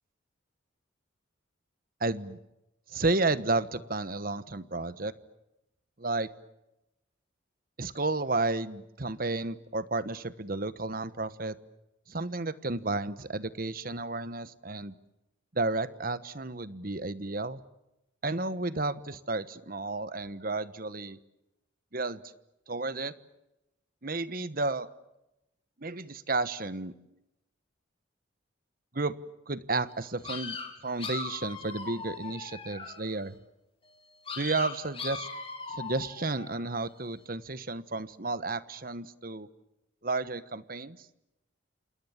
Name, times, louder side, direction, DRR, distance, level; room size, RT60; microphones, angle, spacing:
voice 1, 2.0-2.4 2.9-5.1 6.0-6.3 7.8-11.6 12.1-14.9 15.5-17.6 18.2-21.2 21.9-22.2 22.7-23.2 24.0-24.9 25.8-26.9 28.9-29.2 29.5-30.6 30.8-33.3 34.4-35.3 35.7-39.5 40.0-41.0, right 3 dB, 45° right, 14 dB, 1.2 m, -32 dB
sound 1, 30.2-33.1 34.3-36.7, left 5 dB, 30° left, 3.7 m, -39 dB
28.0 x 28.0 x 7.3 m, 0.91 s
head